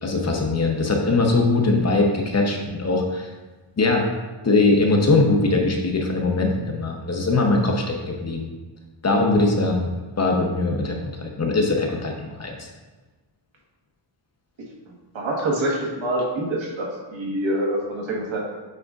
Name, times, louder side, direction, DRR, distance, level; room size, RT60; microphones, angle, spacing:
voice 1, 0.0-3.3 3.8-4.1 4.4-8.5 9.0-12.7, left 3 dB, 35° left, 1 dB, 0.8 m, -21 dB
voice 2, 14.9-18.4, right 1 dB, 80° right, -2 dB, 1.4 m, -26 dB
7.8 x 5.0 x 2.4 m, 1.2 s
wide cardioid pair, 125°, 46 cm